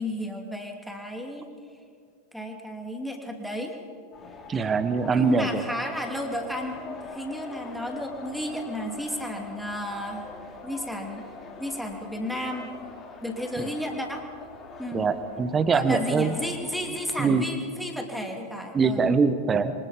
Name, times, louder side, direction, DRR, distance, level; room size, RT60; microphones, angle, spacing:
voice 1, 0.0-1.5 2.3-3.7 5.1-10.3 10.6-11.2 11.6-12.7 13.2-14.2 14.8-15.0 15.7-19.1, equal, ahead, 2 dB, 2.9 m, -33 dB
sound 1, 4.1-17.2, left 4 dB, 20° left, 3.8 m, -43 dB
voice 2, 4.5-5.6 13.6-13.7 14.9-16.3 17.2-17.4 18.7-19.7, right 4 dB, 20° right, 12 dB, 1.3 m, -23 dB
27.0 x 24.5 x 5.3 m, 2.2 s
figure-of-eight pair, 90°, 0 cm